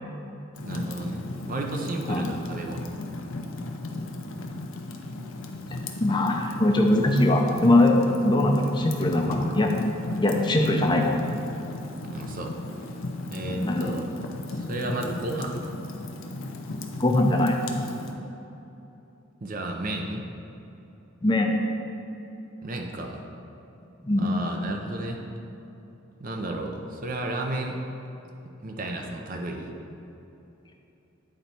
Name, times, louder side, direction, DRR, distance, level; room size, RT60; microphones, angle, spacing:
Fire, 0.5-18.1, left 2 dB, 65° left, 0.6 m, -35 dB
voice 1, 0.6-2.9 12.0-12.5 13.3-14.1 14.5-15.7 19.4-20.3 22.6-23.2 24.2-25.2 26.2-27.8 28.6-29.7, right 1 dB, 40° right, 2 dB, 0.6 m, -32 dB
voice 2, 6.0-9.7 10.2-11.1 13.6-13.9 17.0-17.6 21.2-21.5 24.0-24.3, left 1 dB, 20° left, 2 dB, 0.6 m, -21 dB
8.9 x 4.0 x 4.4 m, 2.9 s
head